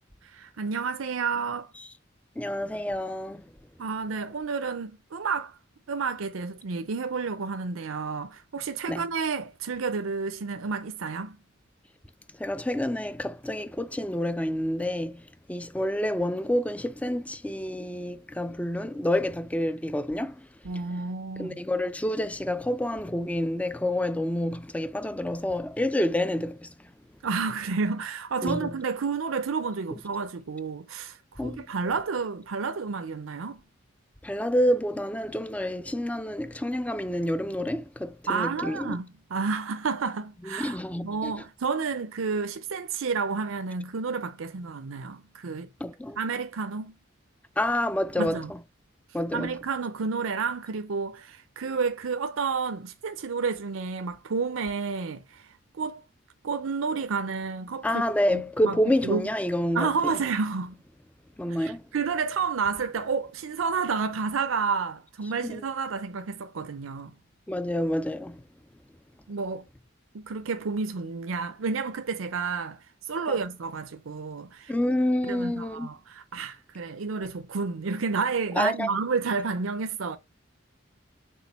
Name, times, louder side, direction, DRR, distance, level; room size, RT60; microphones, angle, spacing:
voice 1, 0.2-1.7 3.8-5.6 5.9-11.4 20.6-21.6 27.2-33.6 38.3-45.7 46.2-46.9 48.2-48.5 49.3-56.0 56.4-58.0 58.3-59.3 59.7-60.8 61.5-67.2 69.3-69.7 70.1-74.7 75.2-80.2, right 5 dB, 80° right, 0.6 m, -30 dB
voice 2, 2.4-3.4 8.9-9.0 12.4-20.5 21.4-26.7 28.4-28.7 29.9-30.0 31.4-31.6 34.2-39.0 40.5-41.3 45.8-46.2 47.6-48.4 49.1-49.6 57.8-59.9 61.4-61.8 65.4-65.6 67.5-68.4 73.3-73.4 74.7-75.9 78.6-78.9, left 1 dB, 5° left, 0.3 m, -28 dB
6.2 x 3.7 x 4.1 m
head